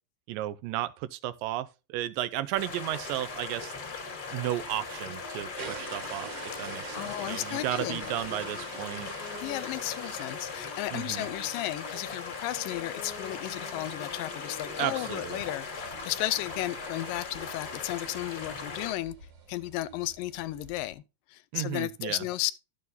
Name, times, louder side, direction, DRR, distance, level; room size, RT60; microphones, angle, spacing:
voice 1, 0.3-3.7 4.3-9.1 10.9-11.3 14.8-15.4 21.5-22.3, right 14 dB, 85° right, 2.3 m, -34 dB
sound 1, 2.6-18.9, left 4 dB, 35° left, 1.9 m, -39 dB
sound 2, 5.6-11.0 11.4-11.7 12.0-12.1 12.3-12.4 12.7-20.9, right 4 dB, 50° right, 2.0 m, -47 dB
voice 2, 6.6-8.1 9.4-19.2 19.5-21.0 21.3-22.5, left 16 dB, 85° left, 2.3 m, -34 dB
Wind instrument woodwind instrument, 7.7-15.5, left 7 dB, 70° left, 2.2 m, -48 dB
12.5 x 6.8 x 2.6 m
omnidirectional pair, 3.9 m